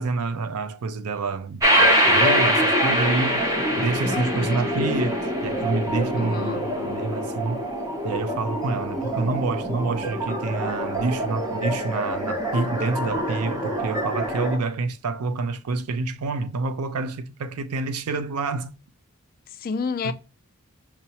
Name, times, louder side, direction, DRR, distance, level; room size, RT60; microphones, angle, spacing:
voice 1, 0.0-3.5 3.8-7.6 8.0-18.7 20.0-20.1, right 3 dB, 85° right, 0.4 m, -28 dB
sound 1, 1.6-14.6, equal, 15° right, 0.6 m, -24 dB
voice 2, 6.2-6.6 19.5-20.1, left 5 dB, 40° left, 0.3 m, -30 dB
5.5 x 2.0 x 2.8 m
head